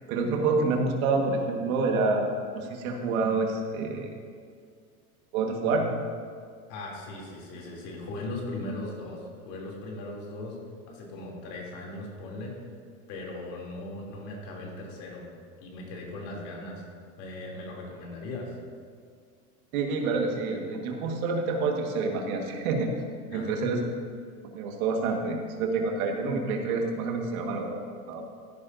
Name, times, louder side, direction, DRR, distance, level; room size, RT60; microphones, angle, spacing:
voice 1, 0.1-2.3 2.5-4.1 5.3-6.1 19.7-22.9 23.3-23.8 24.5-28.2, right 3 dB, 65° right, 2 dB, 1.7 m, -28 dB
voice 2, 6.7-12.6 13.1-15.3 15.6-16.8 17.2-18.5 23.3-23.8, left 2 dB, 55° left, -2 dB, 3.1 m, -38 dB
14.5 x 10.0 x 2.7 m, 2.1 s
hypercardioid pair, 110°, 45 cm